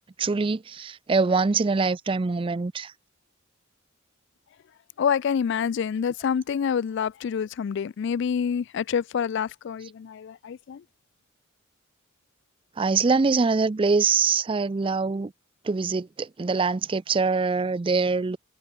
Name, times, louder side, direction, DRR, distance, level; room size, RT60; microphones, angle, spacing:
voice 1, 0.2-2.9 12.8-15.3 15.6-18.4, right 4 dB, 25° right, 0.4 m, -24 dB
voice 2, 5.0-10.8, left 7 dB, 60° left, 0.3 m, -27 dB
head